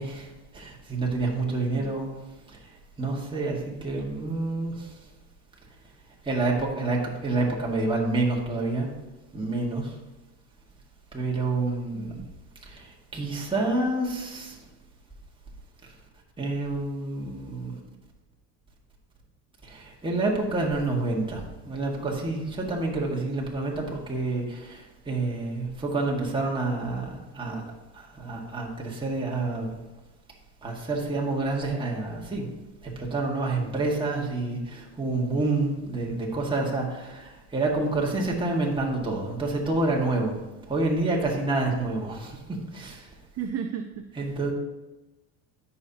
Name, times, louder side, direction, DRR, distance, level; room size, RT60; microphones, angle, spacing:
voice 1, 0.0-2.1 2.5-2.7 3.0-4.9 6.2-8.9 9.3-9.9 11.1-12.2 12.7-14.6 15.8-15.9 16.4-17.7 19.6-27.6 27.9-29.7 30.6-32.5 32.8-40.4 40.7-42.4 42.7-43.1 44.2-44.5, right 2 dB, 10° right, -3 dB, 1.8 m, -28 dB
voice 2, 11.9-12.3 43.3-44.3, right 7 dB, 35° right, 6 dB, 0.6 m, -35 dB
13.5 x 5.6 x 2.9 m, 1.1 s
supercardioid pair, 105°, 42 cm